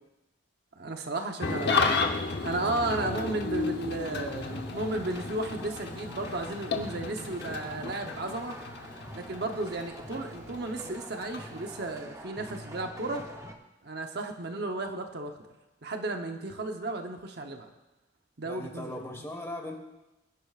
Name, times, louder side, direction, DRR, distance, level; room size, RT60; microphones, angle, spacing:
voice 1, 0.8-8.6 9.1-13.3 13.8-15.5 15.8-17.7 18.4-19.2, right 2 dB, 55° right, 4 dB, 0.9 m, -34 dB
Engine starting / Idling, 1.4-12.0, left 4 dB, 55° left, 0.9 m, -33 dB
sound 1, 4.5-13.6, right 1 dB, 15° right, 0.9 m, -46 dB
voice 2, 18.4-19.8, left 1 dB, 15° left, 2 dB, 1.4 m, -39 dB
21.5 x 10.5 x 2.4 m, 1.0 s
head